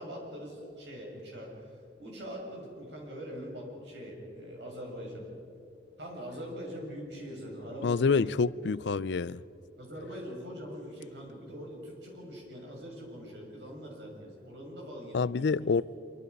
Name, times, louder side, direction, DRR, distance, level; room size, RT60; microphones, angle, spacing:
voice 1, 0.0-1.7 2.0-5.2 6.0-8.3 9.8-15.8, equal, 70° right, 6.8 m, -42 dB
voice 2, 7.8-9.4 15.1-15.8, left 4 dB, 70° left, 0.4 m, -27 dB
26.0 x 24.0 x 5.4 m
head